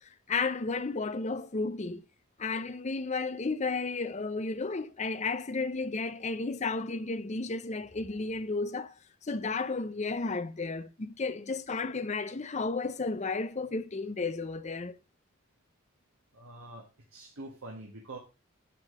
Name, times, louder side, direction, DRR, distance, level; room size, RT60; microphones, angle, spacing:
voice 1, 0.0-2.0 2.4-8.9 9.2-15.0, left 3 dB, 35° left, 0.6 m, -33 dB
voice 2, 16.3-18.2, right 2 dB, 90° right, 1.5 m, -45 dB
8.0 x 5.9 x 4.9 m
head